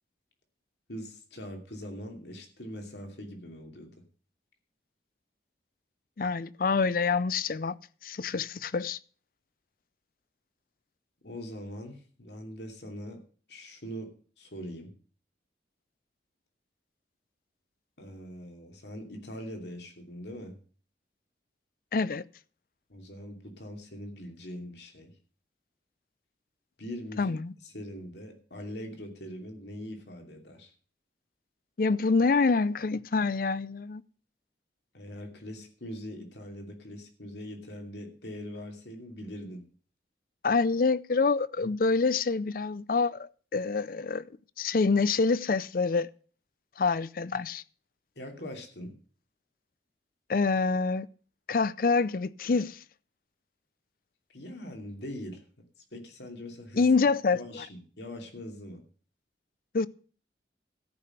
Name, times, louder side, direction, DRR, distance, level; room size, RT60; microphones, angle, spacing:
voice 1, 0.9-3.9 11.2-13.2 13.5-14.1 14.4-14.9 18.0-20.6 22.9-25.1 26.8-27.3 27.6-30.7 34.9-39.6 48.2-48.9 54.3-55.4 55.9-57.0 57.3-58.8, equal, 70° left, 2.7 m, -42 dB
voice 2, 6.2-7.7 8.0-9.0 21.9-22.2 27.2-27.5 31.8-34.0 40.4-44.3 44.6-46.1 46.8-47.6 50.3-51.1 51.5-52.8 56.8-57.6 59.7-59.9, left 4 dB, 50° left, 0.5 m, -26 dB
13.5 x 5.9 x 7.9 m
head